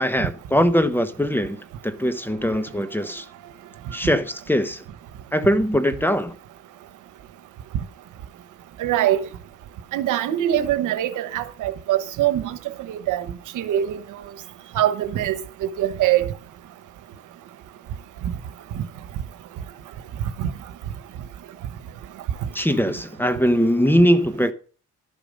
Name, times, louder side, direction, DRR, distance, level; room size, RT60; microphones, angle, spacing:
voice 1, 0.0-3.3 3.9-4.8 5.3-6.3 22.5-24.5, equal, 5° left, 1.0 m, -21 dB
voice 2, 8.8-9.2 9.9-12.6 12.9-13.3 13.5-14.0 14.7-16.3 18.7-18.8 20.4-20.5, right 12 dB, 85° right, 1.2 m, -23 dB
12.5 x 7.0 x 5.3 m
cardioid pair, 90°, 30 cm